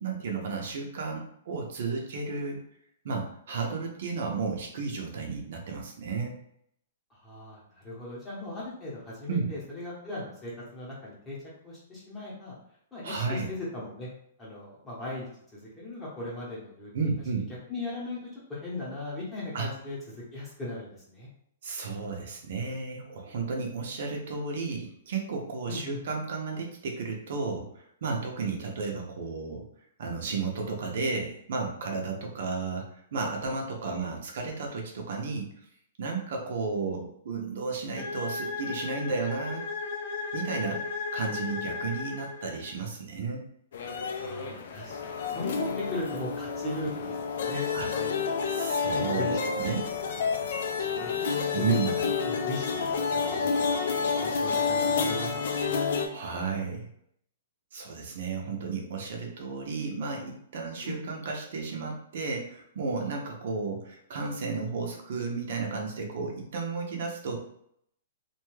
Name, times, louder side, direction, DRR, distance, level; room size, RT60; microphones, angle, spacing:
voice 1, 0.0-2.6 3.0-6.4 9.3-9.5 13.0-13.5 16.9-17.5 19.5-19.7 21.6-29.6 30.0-32.9 33.1-35.5 36.0-39.7 40.3-43.4 47.7-47.9 48.5-49.9 51.5-52.0 56.1-56.9 57.7-67.4, right 4 dB, 55° right, 1 dB, 0.6 m, -33 dB
voice 2, 7.1-11.4 11.6-12.5 12.9-14.1 14.4-17.1 17.7-21.3 25.7-26.0 44.2-48.4 48.9-49.4 50.3-51.1 51.7-55.8 60.8-61.0, left 2 dB, 10° left, -7 dB, 0.9 m, -38 dB
sound 1, 38.0-42.8, left 4 dB, 45° left, 0.8 m, -35 dB
sound 2, 43.7-56.1, left 5 dB, 60° left, 0.4 m, -29 dB
2.6 x 2.2 x 3.1 m, 0.70 s
hypercardioid pair, 170°, 0 cm